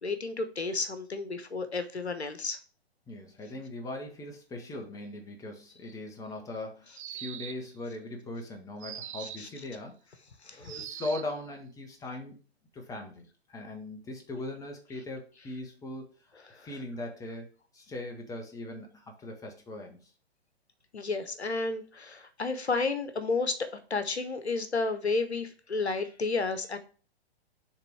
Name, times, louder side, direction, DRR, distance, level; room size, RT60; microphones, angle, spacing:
voice 1, 0.0-2.6 9.2-9.5 10.5-10.8 20.9-23.6 23.9-26.8, left 3 dB, 85° left, 10 dB, 0.9 m, -31 dB
voice 2, 3.1-9.9 10.5-12.3 12.7-16.1 16.6-17.5 17.7-20.1, left 2 dB, 10° left, 2 dB, 1.2 m, -40 dB
sound 1, 6.9-7.8 8.8-9.6 10.6-11.4, right 11 dB, 30° right, 0.4 m, -42 dB
6.8 x 3.5 x 4.5 m, 0.38 s
figure-of-eight pair, 120°, 32 cm